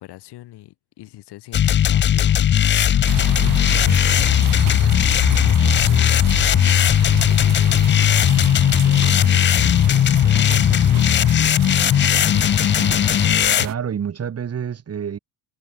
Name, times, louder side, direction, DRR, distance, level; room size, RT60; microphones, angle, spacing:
voice 1, 0.0-2.4 3.1-5.2 5.5-6.7 7.0-9.5 9.8-11.3 12.1-12.7, left 16 dB, 75° left, 2.6 m, -41 dB
sound 1, 1.5-13.7, left 10 dB, 30° left, 0.4 m, -17 dB
sound 2, 3.1-13.7, right 14 dB, 55° right, 1.0 m, -31 dB
voice 2, 13.6-15.2, right 8 dB, 35° right, 2.6 m, -28 dB
cardioid pair, 135°, 40 cm